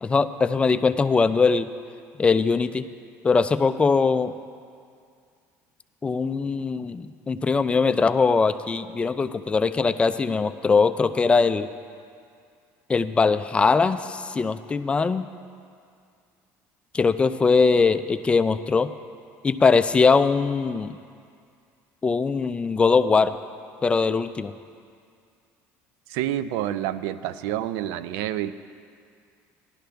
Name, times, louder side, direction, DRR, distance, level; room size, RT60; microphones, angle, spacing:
voice 1, 0.0-1.7 2.2-2.9 3.2-4.3 6.0-11.7 12.9-15.3 16.9-18.9 19.4-21.0 22.0-23.3 23.8-24.5, left 4 dB, 20° left, 11 dB, 0.4 m, -21 dB
voice 2, 26.1-28.5, right 12 dB, 80° right, 14 dB, 0.5 m, -28 dB
17.0 x 11.5 x 3.4 m, 2.3 s
cardioid pair, 125°, 6 cm